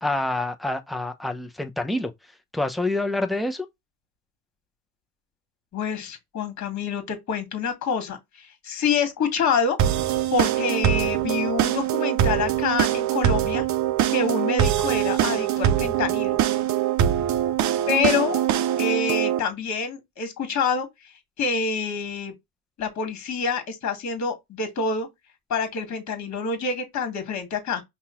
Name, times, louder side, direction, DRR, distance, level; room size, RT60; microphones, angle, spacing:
voice 1, 0.0-2.1 2.5-3.7, left 2 dB, ahead, 0.7 m, -27 dB
voice 2, 5.7-9.8 10.3-13.6 14.1-16.4 17.9-18.4 18.8-20.9 21.4-22.3 22.8-25.1 25.5-27.8, left 5 dB, 40° left, 1.9 m, -27 dB
sound 1, 9.8-19.4, right 11 dB, 40° right, 0.7 m, -23 dB
5.5 x 2.5 x 3.7 m
hypercardioid pair, 70°, 45 cm